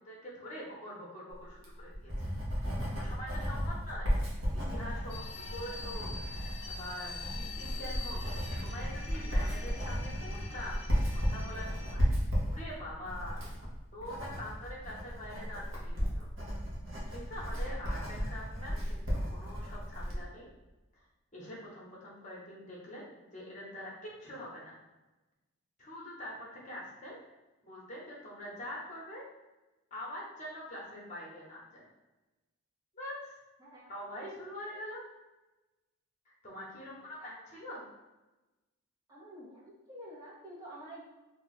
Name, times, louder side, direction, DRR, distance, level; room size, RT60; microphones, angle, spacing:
voice 1, 0.0-4.1 4.5-12.1 12.5-13.4 13.9-16.3 17.1-20.5 20.9-21.0 21.3-24.8 25.8-27.2 27.6-29.3 29.9-31.9 32.9-33.3 33.9-35.0 36.3-37.8, left 1 dB, 35° left, -4 dB, 0.9 m, -45 dB
Writing, 1.5-20.2, equal, 60° right, 0.9 m, -34 dB
sound 1, 5.1-11.9, left 4 dB, 50° left, 0.5 m, -45 dB
voice 2, 33.6-33.9 34.6-34.8 37.2-37.3 39.1-41.0, right 1 dB, 15° right, -7 dB, 0.6 m, -49 dB
2.7 x 2.3 x 3.9 m, 1.1 s
head